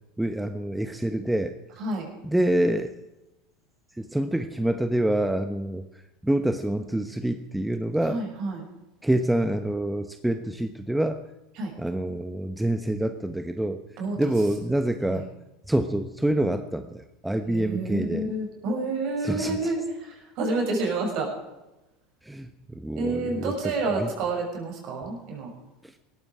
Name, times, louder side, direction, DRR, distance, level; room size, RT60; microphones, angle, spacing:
voice 1, 0.2-1.6 2.2-2.9 3.9-8.2 9.0-11.2 11.8-15.3 15.7-18.3 19.2-19.7 22.2-24.1 25.8-25.9, right 1 dB, 5° right, 8 dB, 1.1 m, -27 dB
voice 2, 8.1-8.6 11.6-11.7 14.0-14.3 15.1-15.2 17.4-21.3 23.0-25.5, right 2 dB, 55° right, 1 dB, 6.6 m, -29 dB
19.0 x 14.5 x 4.9 m, 0.98 s
hypercardioid pair, 80°, 0 cm